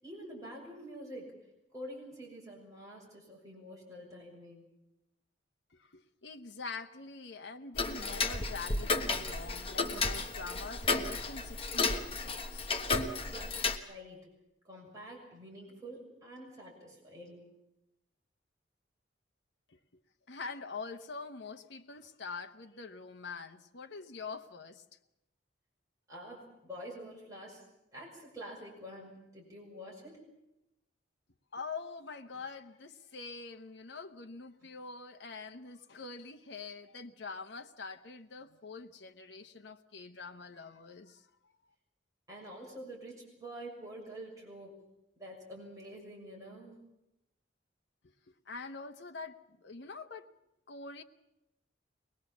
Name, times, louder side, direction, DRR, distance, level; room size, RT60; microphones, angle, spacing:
voice 1, 0.0-1.3 1.7-4.7 13.3-13.5 13.8-14.3 14.6-17.5 26.1-27.6 27.9-30.3 34.6-34.7 42.3-44.8 45.2-46.8, equal, 20° right, -3 dB, 6.5 m, -47 dB
voice 2, 5.7-12.7 19.7-19.8 20.3-24.8 31.5-41.5 48.5-50.3 50.7-51.0, left 4 dB, 70° left, 5 dB, 1.0 m, -45 dB
Tick-tock, 7.8-13.8, left 3 dB, 30° left, 1.3 m, -33 dB
23.0 x 20.0 x 7.3 m, 0.91 s
head